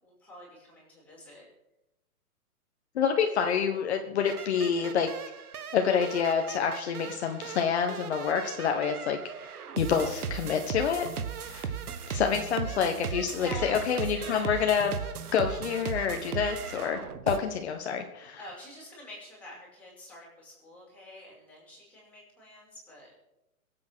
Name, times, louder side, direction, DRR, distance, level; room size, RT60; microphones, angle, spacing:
voice 1, 0.0-1.4 11.8-12.1 13.3-14.6 18.4-23.2, left 1 dB, 5° left, -6 dB, 5.6 m, -47 dB
voice 2, 2.9-5.1 5.7-9.3 9.8-11.1 11.5-11.7 12.1-15.0 15.3-17.0 17.3-18.4, left 7 dB, 45° left, 4 dB, 1.5 m, -27 dB
sound 1, 4.2-17.4, right 7 dB, 85° right, 1.6 m, -37 dB
22.5 x 8.7 x 6.2 m, 0.91 s
hypercardioid pair, 165°, 44 cm